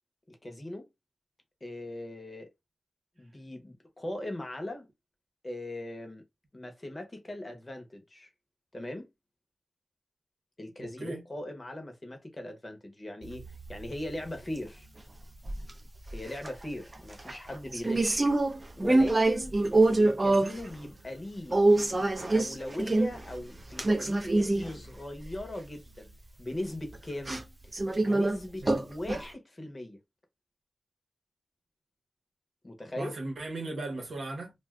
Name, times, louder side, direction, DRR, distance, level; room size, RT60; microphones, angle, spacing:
voice 1, 0.3-0.9 1.6-2.5 3.2-4.9 5.4-6.2 6.5-8.3 8.7-9.1 10.6-13.4 13.7-14.9 16.1-18.3 18.8-19.5 20.0-21.6 22.0-26.1 26.4-27.4 28.0-30.0 32.6-33.1, left 1 dB, 25° left, 0.8 m, -39 dB
voice 2, 10.8-11.2 28.7-28.8 33.0-34.5, right 2 dB, 70° right, 1.0 m, -37 dB
sound 1, 13.2-14.7 15.3-15.7 16.1-16.7 16.9-20.7 21.0-21.1 21.5-24.8 25.2-25.5 25.9-26.0 26.8-27.0 27.2-27.4 27.7-28.4 28.6-29.2, right 2 dB, 25° right, 0.5 m, -26 dB
2.4 x 2.3 x 3.4 m
wide cardioid pair, 115°, 0 cm